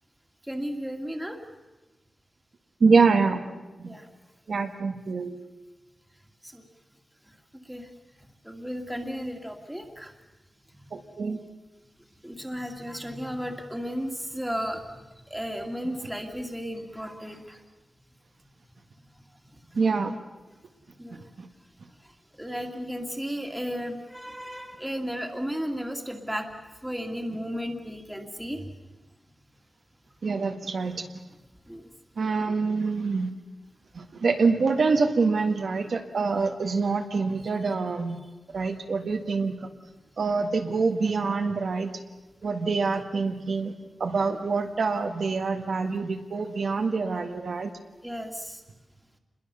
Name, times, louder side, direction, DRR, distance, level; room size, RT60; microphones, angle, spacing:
voice 1, 0.5-1.4 3.8-4.1 6.4-6.6 7.7-7.9 8.4-10.1 12.2-14.9 15.3-17.6 21.0-21.3 22.3-26.5 26.8-28.7 31.7-31.9 42.6-42.7 48.0-48.6, equal, 5° right, 3 dB, 2.3 m, -34 dB
voice 2, 2.8-3.4 3.8-3.9 4.5-5.4 10.9-11.4 19.7-20.2 21.4-21.5 30.2-31.1 32.2-33.3 33.9-38.2 38.5-39.7 40.2-41.9 42.4-43.7 44.0-47.7, right 4 dB, 65° right, 4 dB, 1.7 m, -25 dB
28.0 x 21.5 x 6.9 m, 1.2 s
wide cardioid pair, 150°, 0 cm